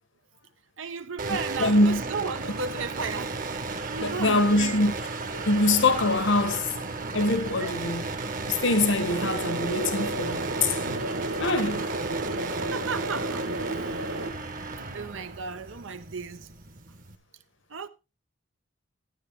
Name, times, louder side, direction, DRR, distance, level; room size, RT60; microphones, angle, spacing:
voice 1, 0.8-3.4 3.9-4.9 7.6-7.7 12.7-13.5 14.9-16.5 17.7-17.9, right 5 dB, 85° right, 0.9 m, -34 dB
sound 1, 1.2-17.2, right 3 dB, 45° right, 1.1 m, -34 dB
voice 2, 1.6-2.0 4.0-4.9 5.3-6.7 7.1-11.0 11.4-11.9, left 2 dB, 75° left, 1.3 m, -24 dB
sound 2, 9.1-14.3, right 2 dB, 65° right, 1.7 m, -32 dB
12.5 x 9.8 x 3.5 m
head